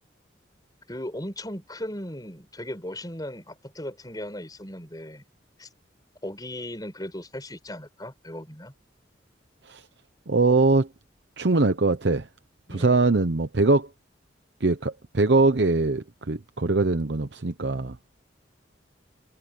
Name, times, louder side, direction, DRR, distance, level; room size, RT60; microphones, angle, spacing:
voice 1, 0.9-5.2 5.6-5.7 6.2-8.7 12.7-13.0, left 1 dB, 20° left, 5.6 m, -37 dB
voice 2, 10.3-10.9 11.4-12.3 12.7-13.9 14.6-18.0, right 3 dB, 65° right, 0.9 m, -22 dB
head